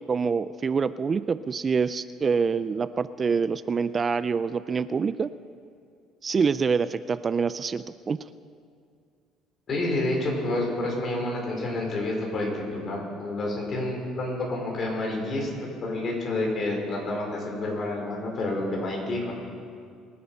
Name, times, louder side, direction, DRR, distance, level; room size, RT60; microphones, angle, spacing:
voice 1, 0.1-5.3 6.2-8.2, right 5 dB, 30° right, 14 dB, 0.3 m, -26 dB
voice 2, 9.7-15.5 15.8-19.3, left 2 dB, 45° left, -1 dB, 4.6 m, -29 dB
23.5 x 8.7 x 5.5 m, 2.3 s
cardioid pair, 105°, 0 cm